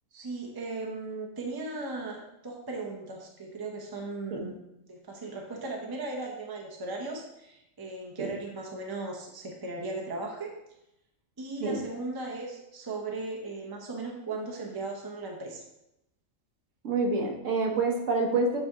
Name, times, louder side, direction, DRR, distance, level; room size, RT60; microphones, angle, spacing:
voice 1, 0.1-4.6 4.8-10.5 11.4-15.6, right 3 dB, 20° right, 0 dB, 0.8 m, -37 dB
voice 2, 16.8-18.6, right 3 dB, 70° right, 1 dB, 1.4 m, -27 dB
8.6 x 3.4 x 3.6 m, 0.85 s
omnidirectional pair, 1.4 m